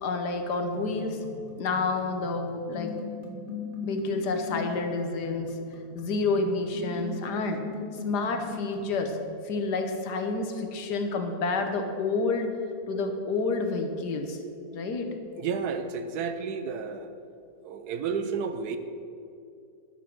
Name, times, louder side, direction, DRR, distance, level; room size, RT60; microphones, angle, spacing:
voice 1, 0.0-1.2 1.6-2.9 3.8-5.5 5.9-7.6 8.0-9.2 9.4-12.5 12.9-14.4 14.7-15.1, left 3 dB, 80° left, 5 dB, 1.6 m, -29 dB
sound 1, 0.7-9.2, left 3 dB, 45° left, 1.4 m, -40 dB
voice 2, 15.4-17.1 17.6-18.8, right 6 dB, 75° right, 9 dB, 1.2 m, -31 dB
11.0 x 6.9 x 6.1 m, 2.5 s
omnidirectional pair, 1.8 m